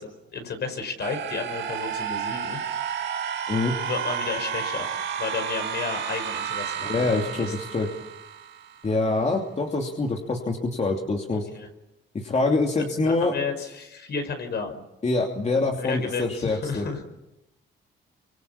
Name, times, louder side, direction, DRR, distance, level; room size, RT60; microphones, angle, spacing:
voice 1, 0.0-2.6 3.8-4.9 5.2-7.5 11.3-11.7 13.0-14.8 15.8-17.0, left 5 dB, 55° left, 6 dB, 5.4 m, -32 dB
sound 1, 1.0-8.9, right 8 dB, 65° right, 4.0 m, -31 dB
voice 2, 6.8-7.9 8.8-11.5 12.1-13.3 15.0-16.9, left 3 dB, 35° left, 1 dB, 2.9 m, -25 dB
29.0 x 26.0 x 7.1 m, 0.93 s
cardioid pair, 90°, 20 cm